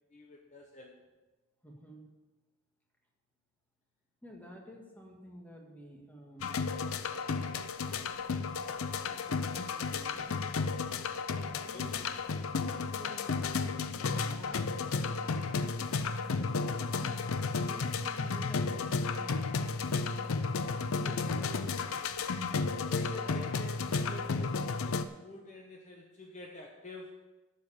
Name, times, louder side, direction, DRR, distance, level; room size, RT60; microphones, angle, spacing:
voice 1, 0.1-1.0 9.9-10.1 11.7-11.9 22.9-27.3, left 2 dB, 35° left, 0 dB, 1.0 m, -47 dB
voice 2, 1.6-2.0 4.2-6.6 9.3-10.5 11.4-12.0 12.9-13.9 14.3-14.8 15.6-20.2 20.6-21.9, equal, 10° left, 0 dB, 1.7 m, -51 dB
sound 1, 6.4-25.0, left 4 dB, 85° left, 0.6 m, -33 dB
8.4 x 6.8 x 8.4 m, 1.1 s
head